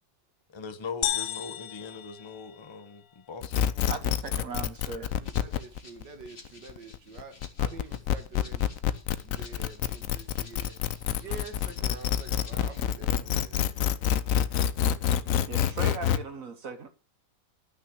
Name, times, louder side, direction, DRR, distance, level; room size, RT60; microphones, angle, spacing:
voice 1, 0.5-3.7, left 5 dB, 20° left, 0.9 m, -40 dB
sound 1, 1.0-3.0, left 12 dB, 90° left, 1.4 m, -33 dB
sound 2, 3.4-16.2, left 10 dB, 65° left, 0.9 m, -27 dB
voice 2, 3.9-5.1 15.5-16.9, right 5 dB, 50° right, 1.5 m, -38 dB
Rattle (instrument), 4.7-12.8, left 3 dB, 35° left, 1.9 m, -54 dB
voice 3, 5.0-8.8 9.2-10.8 11.2-13.6, right 4 dB, 70° right, 2.2 m, -46 dB
12.5 x 6.1 x 6.7 m
omnidirectional pair, 1.9 m